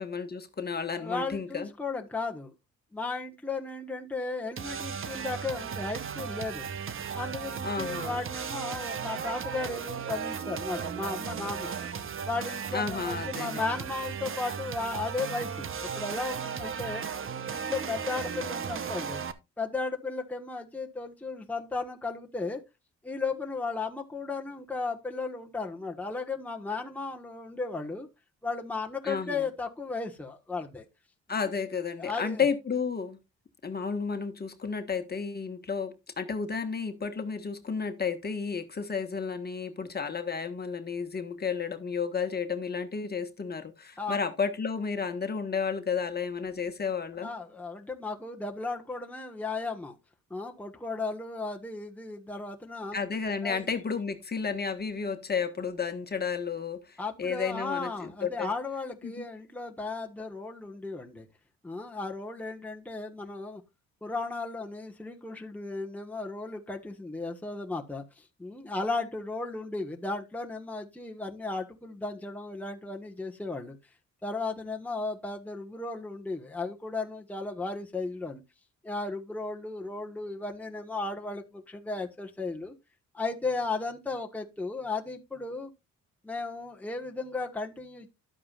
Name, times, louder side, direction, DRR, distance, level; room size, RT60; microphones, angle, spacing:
voice 1, 0.0-1.7 7.6-8.2 12.7-13.7 29.0-29.5 31.3-33.2 33.6-47.3 52.9-58.5 59.0-59.2, left 5 dB, 30° left, 1.4 m, -32 dB
voice 2, 0.9-2.5 2.9-6.7 7.1-11.8 12.2-17.0 17.5-19.2 19.6-22.6 23.0-28.1 28.4-30.9 32.0-32.4 44.0-44.2 47.2-50.0 50.3-53.0 53.4-53.7 57.0-61.3 61.6-63.6 64.0-73.8 74.2-78.4 78.8-82.7 83.1-85.7 86.2-88.1, left 3 dB, 5° left, 1.3 m, -35 dB
sound 1, 4.6-19.3, right 6 dB, 45° right, 1.0 m, -36 dB
11.5 x 8.5 x 2.5 m
cardioid pair, 90°, 30 cm